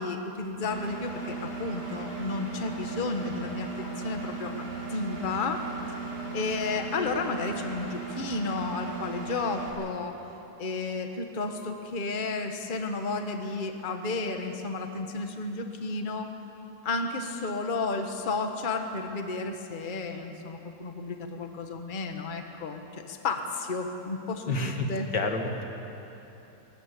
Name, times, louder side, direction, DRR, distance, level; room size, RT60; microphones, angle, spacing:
voice 1, 0.0-5.6 6.3-10.1 10.6-16.3 16.8-25.1, left 3 dB, 30° left, 5 dB, 1.4 m, -32 dB
Engine, 0.6-9.7, right 4 dB, 65° right, 5.8 m, -37 dB
voice 2, 24.5-24.9 25.1-25.6, left 2 dB, 75° left, 3 dB, 2.4 m, -28 dB
21.0 x 19.5 x 8.3 m, 3.0 s
omnidirectional pair, 1.9 m